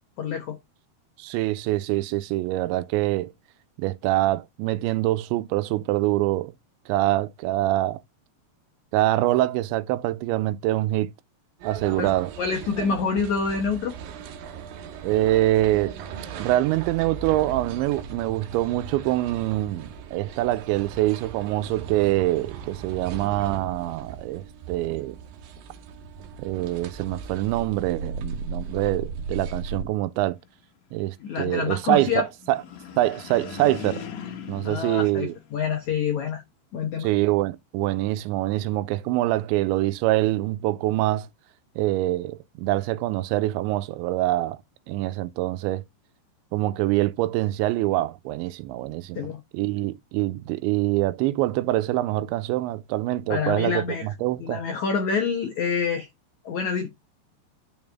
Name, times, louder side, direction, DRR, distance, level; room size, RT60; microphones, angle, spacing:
voice 1, 0.2-0.6 12.0-12.1 12.4-13.9 31.2-32.3 34.6-36.4 36.7-37.1 49.1-49.4 53.3-54.1 54.4-56.1 56.4-56.9, left 5 dB, 80° left, 1.6 m, -27 dB
voice 2, 1.2-3.3 3.8-6.5 6.9-8.0 8.9-11.1 11.6-12.3 15.0-15.9 16.4-25.2 26.4-30.4 30.9-32.6 33.0-34.0 34.5-35.4 37.0-41.3 41.8-44.6 44.9-45.8 46.5-49.3 49.5-54.6, right 16 dB, 85° right, 3.0 m, -25 dB
sound 1, 11.6-29.8, right 5 dB, 65° right, 2.4 m, -37 dB
sound 2, 32.4-36.0, left 7 dB, 60° left, 2.4 m, -39 dB
9.7 x 5.3 x 3.5 m
omnidirectional pair, 5.2 m